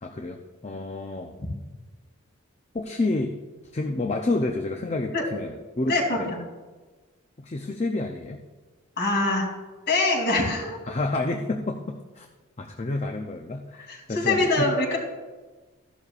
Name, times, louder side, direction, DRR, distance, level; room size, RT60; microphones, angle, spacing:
voice 1, 0.0-1.3 2.7-3.4 3.7-6.3 7.4-8.4 10.9-12.3 12.6-14.7, left 2 dB, 30° left, 4 dB, 0.5 m, -29 dB
voice 2, 5.9-6.4 9.0-9.5 9.9-10.8 13.9-15.0, left 2 dB, 50° left, -1 dB, 2.9 m, -24 dB
14.5 x 11.5 x 2.4 m, 1.3 s
head